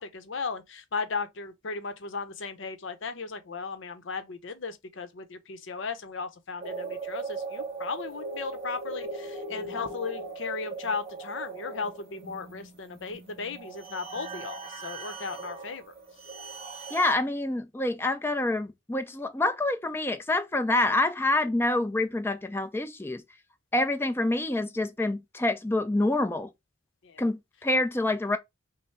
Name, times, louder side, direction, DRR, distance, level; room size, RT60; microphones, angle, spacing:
voice 1, 0.0-15.8 27.0-27.2, left 5 dB, 75° left, 0.7 m, -36 dB
sound 1, 6.6-17.1, right 3 dB, 30° right, 0.8 m, -39 dB
voice 2, 16.9-23.2 23.7-26.5 27.2-28.4, left 2 dB, 10° left, 0.4 m, -27 dB
5.4 x 2.0 x 3.2 m
head